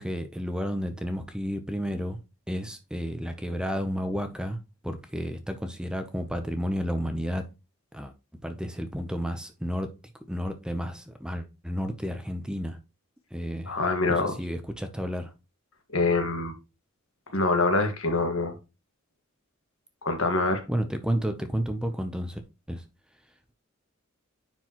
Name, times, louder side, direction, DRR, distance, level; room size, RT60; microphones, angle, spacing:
voice 1, 0.0-2.2 2.5-4.6 4.8-7.4 7.9-8.1 8.4-9.9 10.3-12.8 13.3-13.8 14.1-15.3 20.7-22.4 22.7-22.8, equal, 5° right, 0.7 m, -31 dB
voice 2, 13.7-14.4 15.9-16.5 17.3-18.5 20.0-20.6, left 3 dB, 65° left, 1.7 m, -25 dB
9.8 x 4.6 x 3.0 m
head